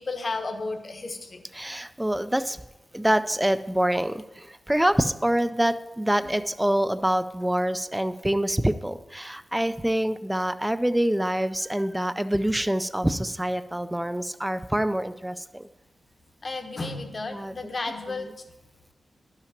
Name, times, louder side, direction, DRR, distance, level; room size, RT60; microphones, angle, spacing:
voice 1, 0.0-1.4 6.2-6.3 16.4-18.3, left 3 dB, 35° left, 6 dB, 1.0 m, -33 dB
voice 2, 1.5-2.6 2.9-15.7 17.3-17.5, right 1 dB, 5° right, 12 dB, 0.3 m, -26 dB
11.5 x 5.8 x 5.8 m, 1.0 s
wide cardioid pair, 160°, 0 cm